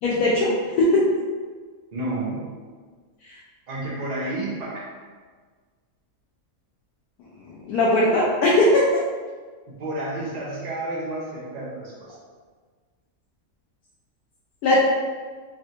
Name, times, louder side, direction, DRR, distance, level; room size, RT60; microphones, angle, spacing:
voice 1, 0.0-1.1 7.7-8.8 14.6-14.8, left 1 dB, 90° left, -5 dB, 1.1 m, -19 dB
voice 2, 1.9-2.4 3.7-4.8 9.7-11.9, right 2 dB, 85° right, -6 dB, 0.3 m, -30 dB
3.4 x 2.1 x 2.7 m, 1.5 s
omnidirectional pair, 1.6 m